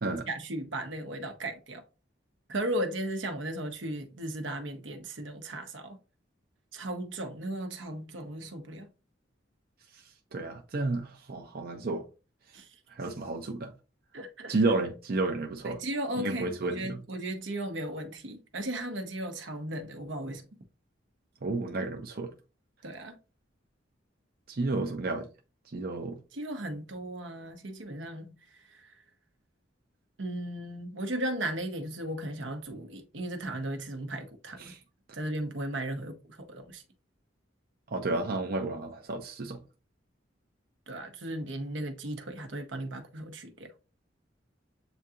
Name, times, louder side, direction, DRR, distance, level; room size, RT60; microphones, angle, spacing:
voice 1, 0.3-1.8 2.5-6.0 6.7-8.9 12.5-12.7 14.1-14.5 15.6-20.4 22.8-23.2 26.3-28.4 28.7-28.9 30.2-34.7 35.1-36.8 40.9-43.7, right 1 dB, 80° right, 0.9 m, -36 dB
voice 2, 10.3-12.0 12.9-13.7 14.5-15.8 16.2-17.0 21.4-22.3 24.5-25.3 25.7-26.2 34.6-34.8 37.9-39.6, right 3 dB, 55° right, 0.7 m, -31 dB
7.9 x 2.8 x 2.4 m
head